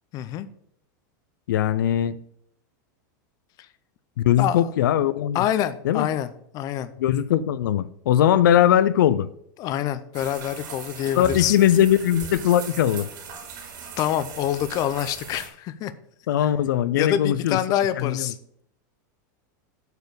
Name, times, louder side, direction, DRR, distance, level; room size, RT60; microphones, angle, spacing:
voice 1, 0.1-0.5 4.4-4.7 5.3-6.9 9.6-11.6 14.0-15.9 16.9-18.4, left 11 dB, 35° left, 0.6 m, -26 dB
voice 2, 1.5-2.2 4.2-5.4 5.8-6.1 7.0-9.3 11.1-13.1 16.3-17.6 18.0-18.3, left 11 dB, 85° left, 0.5 m, -20 dB
sound 1, 10.1-15.5, right 5 dB, 75° right, 2.9 m, -38 dB
8.1 x 4.5 x 7.0 m
supercardioid pair, 145°, 10 cm